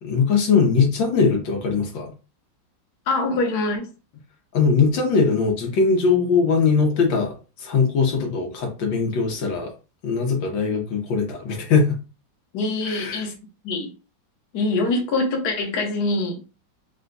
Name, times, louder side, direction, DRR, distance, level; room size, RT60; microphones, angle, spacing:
voice 1, 0.0-2.1 4.5-9.7 10.0-12.0 12.9-13.3, left 5 dB, 80° left, 1.7 m, -21 dB
voice 2, 3.1-3.9 12.5-13.3 13.6-13.9 14.5-16.4, left 2 dB, 60° left, 1.4 m, -24 dB
4.3 x 2.3 x 3.9 m
omnidirectional pair, 2.1 m